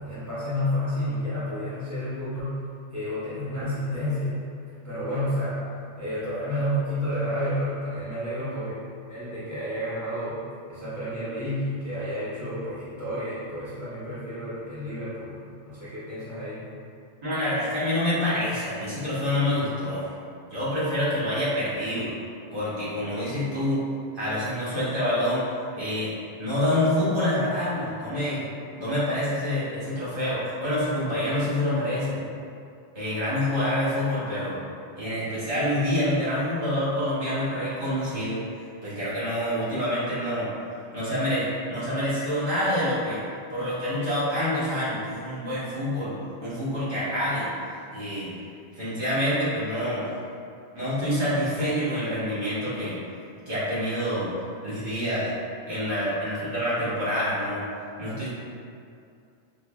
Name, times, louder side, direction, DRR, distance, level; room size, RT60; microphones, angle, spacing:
voice 1, 0.0-2.6 2.9-4.3 4.8-5.6 6.0-8.8 9.1-10.4 10.7-15.3 15.7-16.7, equal, 20° left, -13 dB, 0.8 m, -30 dB
voice 2, 17.2-20.1 20.5-22.1 22.5-23.8 24.1-25.4 25.8-26.1 26.4-28.4 28.8-32.2 32.9-34.6 35.0-38.4 38.8-40.5 40.9-43.2 43.5-46.1 46.4-47.5 47.9-48.4 48.7-50.0 50.7-53.0 53.5-54.3 54.6-55.3 55.7-57.6 58.0-58.3, left 1 dB, 55° right, -10 dB, 1.3 m, -27 dB
5.5 x 2.1 x 2.3 m, 2.5 s
omnidirectional pair, 1.1 m